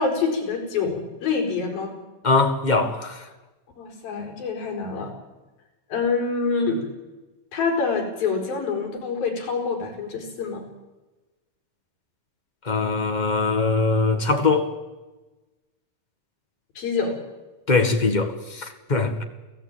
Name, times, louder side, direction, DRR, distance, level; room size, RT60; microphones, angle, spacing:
voice 1, 0.0-2.0 3.8-5.1 5.9-6.9 7.5-10.6 16.8-17.2, left 4 dB, 85° left, 6.2 m, -26 dB
voice 2, 2.2-3.3 12.6-14.7 17.7-19.2, left 3 dB, 30° left, 0.8 m, -22 dB
30.0 x 16.5 x 9.0 m
omnidirectional pair, 4.1 m